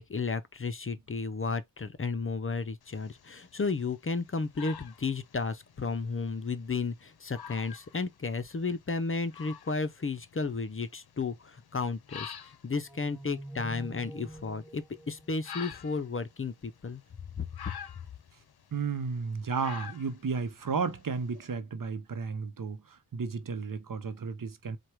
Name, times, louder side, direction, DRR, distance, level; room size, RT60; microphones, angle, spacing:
voice 1, 0.0-12.3 12.6-17.0 17.4-17.5, left 4 dB, 35° left, 0.6 m, -33 dB
sound 1, 2.8-21.5, left 8 dB, 80° left, 0.6 m, -49 dB
sound 2, 12.9-16.3, right 1 dB, 5° right, 2.4 m, -46 dB
voice 2, 18.7-24.8, right 5 dB, 60° right, 0.7 m, -33 dB
4.7 x 2.3 x 4.4 m
wide cardioid pair, 60°, 37 cm